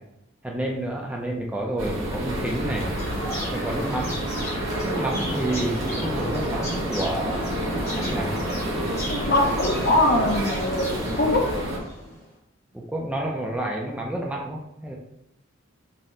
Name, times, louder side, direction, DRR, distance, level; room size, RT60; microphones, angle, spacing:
voice 1, 0.4-2.9 3.5-4.2 4.8-7.6 7.9-8.4 12.7-15.0, right 1 dB, 5° right, -1 dB, 0.3 m, -29 dB
sound 1, 1.8-11.8, right 1 dB, 85° right, 0.9 m, -29 dB
sound 2, 2.9-12.3, equal, 15° left, 0.8 m, -34 dB
voice 2, 9.1-11.5, left 1 dB, 50° left, 1 dB, 0.6 m, -22 dB
4.2 x 2.1 x 3.7 m, 0.84 s
head